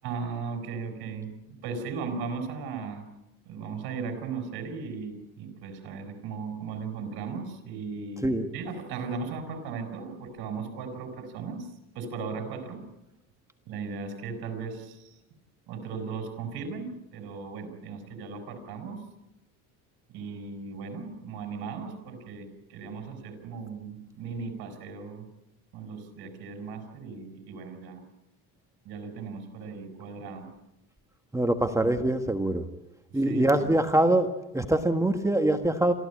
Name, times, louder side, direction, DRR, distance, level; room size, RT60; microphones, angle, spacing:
voice 1, 0.0-3.1 3.5-12.8 13.7-15.2 15.7-19.0 20.1-25.2 25.7-28.1 28.8-30.5 31.7-31.9 33.1-33.7, right 5 dB, 60° right, 6 dB, 6.2 m, -37 dB
voice 2, 31.3-32.7 33.1-34.3 34.5-35.9, right 1 dB, 5° right, 6 dB, 1.4 m, -24 dB
27.0 x 15.0 x 8.6 m, 0.95 s
cardioid pair, 120°, 41 cm